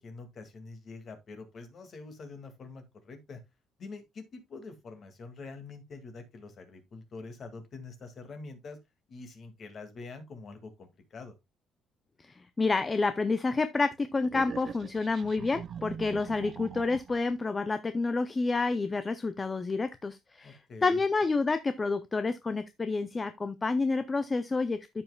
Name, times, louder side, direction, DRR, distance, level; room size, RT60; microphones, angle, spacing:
voice 1, 0.0-3.4 3.8-8.8 9.1-11.3 20.4-21.0, left 3 dB, 35° left, 2.0 m, -45 dB
voice 2, 12.2-24.8, left 3 dB, 15° left, 0.4 m, -29 dB
sound 1, 14.2-17.3, right 7 dB, 35° right, 0.5 m, -42 dB
13.5 x 5.5 x 2.2 m
cardioid pair, 170°, 0 cm